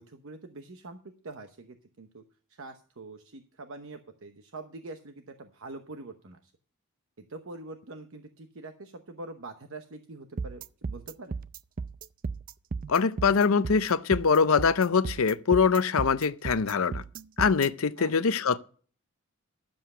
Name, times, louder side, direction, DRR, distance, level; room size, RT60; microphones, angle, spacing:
voice 1, 0.0-2.2 2.5-6.5 7.2-11.4 18.0-18.1, right 2 dB, 65° right, 1.0 m, -44 dB
sound 1, 10.4-17.7, right 4 dB, 40° right, 0.4 m, -35 dB
voice 2, 12.9-17.0 17.4-18.6, left 5 dB, 70° left, 0.6 m, -23 dB
12.0 x 7.8 x 5.5 m
head